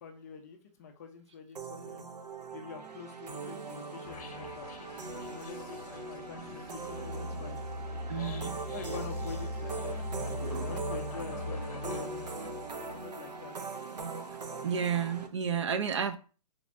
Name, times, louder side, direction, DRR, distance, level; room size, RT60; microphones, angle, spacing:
voice 1, 0.0-2.1 2.5-7.6 8.1-10.0 10.3-13.6, left 6 dB, 25° left, 0.4 m, -46 dB
sound 1, 1.6-15.3, right 4 dB, 90° right, 0.7 m, -41 dB
sound 2, 4.0-13.3, left 1 dB, 60° left, 0.7 m, -40 dB
voice 2, 8.1-8.6 10.4-10.7 14.6-16.2, right 7 dB, 45° right, 0.4 m, -31 dB
3.5 x 2.5 x 3.1 m
hypercardioid pair, 150°, 20 cm